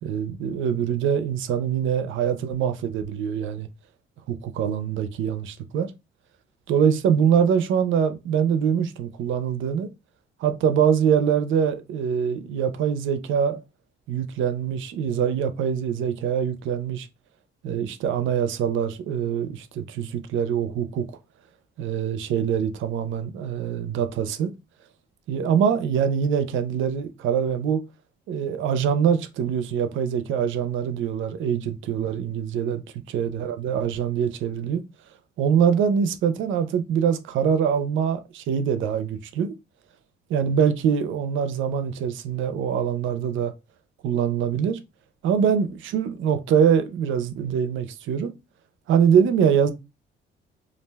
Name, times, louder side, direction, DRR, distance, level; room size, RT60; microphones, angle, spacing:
voice 1, 0.0-3.7 4.3-5.9 6.7-9.9 10.4-13.6 14.1-17.1 17.6-21.1 21.8-24.5 25.3-27.8 28.3-32.8 33.1-34.8 35.4-39.5 40.3-43.5 44.0-44.8 45.2-48.3 48.9-49.7, right 8 dB, 75° right, 0.5 m, -24 dB
2.4 x 2.1 x 3.3 m
cardioid pair, 90°, 20 cm